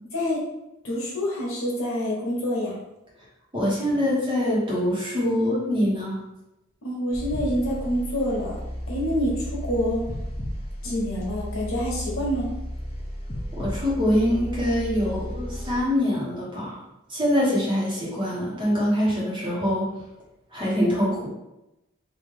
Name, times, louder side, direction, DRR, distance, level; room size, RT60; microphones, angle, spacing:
voice 1, 0.1-0.4 0.8-2.8 6.8-8.6 8.9-10.0 10.8-12.5, equal, 80° left, -3 dB, 1.1 m, -27 dB
voice 2, 3.5-6.2 13.5-16.8 17.1-19.8 20.5-21.3, equal, 25° right, -7 dB, 1.2 m, -24 dB
sound 1, 7.1-15.8, equal, 25° left, 0.6 m, -33 dB
3.2 x 2.6 x 3.7 m, 0.92 s
head